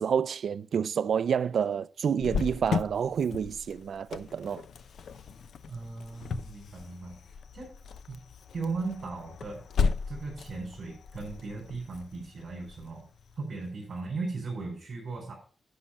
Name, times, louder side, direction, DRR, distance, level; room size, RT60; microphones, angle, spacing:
voice 1, 0.0-4.6, right 7 dB, 70° right, 0.5 m, -29 dB
Cricket, 2.2-13.7, left 5 dB, 80° left, 0.6 m, -36 dB
voice 2, 5.7-7.2 7.5-7.7 8.1-8.2 8.5-9.6 10.1-13.1 13.4-15.3, right 3 dB, 45° right, 4.6 m, -37 dB
11.5 x 6.2 x 5.6 m
wide cardioid pair, 175°, 0 cm